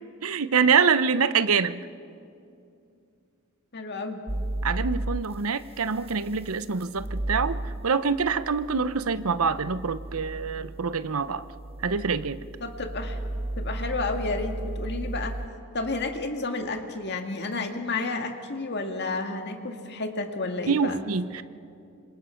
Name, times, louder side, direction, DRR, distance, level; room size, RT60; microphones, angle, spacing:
voice 1, 0.2-1.9 4.6-11.4 11.8-12.4 20.7-21.4, right 5 dB, 75° right, 14 dB, 0.8 m, -25 dB
voice 2, 3.7-4.2 12.6-13.2 13.6-15.3 15.7-21.0, left 3 dB, 50° left, 5 dB, 2.0 m, -31 dB
sound 1, 4.3-15.5, right 1 dB, 30° right, 1.0 m, -35 dB
26.5 x 26.0 x 5.8 m, 2.5 s
head